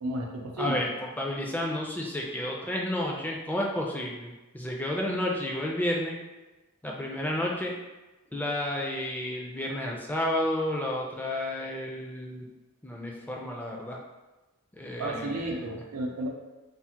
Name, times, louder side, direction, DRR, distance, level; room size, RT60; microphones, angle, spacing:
voice 1, 0.0-0.8 15.0-16.3, right 1 dB, 90° right, 0 dB, 0.5 m, -32 dB
voice 2, 0.6-6.2 6.8-7.8 8.3-12.5 12.8-14.0 14.8-15.8, left 1 dB, 10° left, -2 dB, 0.3 m, -31 dB
3.3 x 2.1 x 2.8 m, 1.1 s
head